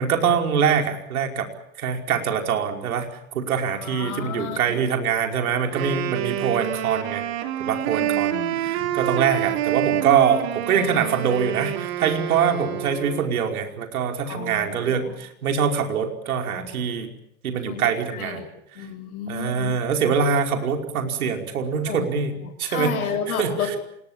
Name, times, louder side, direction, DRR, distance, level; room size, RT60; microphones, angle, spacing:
voice 1, 0.0-1.5 1.8-3.1 3.3-7.2 7.6-17.1 17.4-18.4 19.3-22.3 22.6-23.0 23.3-23.8, right 7 dB, 70° right, 4 dB, 5.1 m, -24 dB
voice 2, 3.8-4.8 8.0-8.9 14.3-15.1 17.7-18.5 18.8-19.7 21.9-22.1 22.4-23.8, left 6 dB, 75° left, 7 dB, 7.3 m, -32 dB
Wind instrument woodwind instrument, 5.6-13.4, right 13 dB, 45° right, 3.8 m, -28 dB
27.5 x 21.5 x 7.4 m, 0.75 s
hypercardioid pair, 155°, 44 cm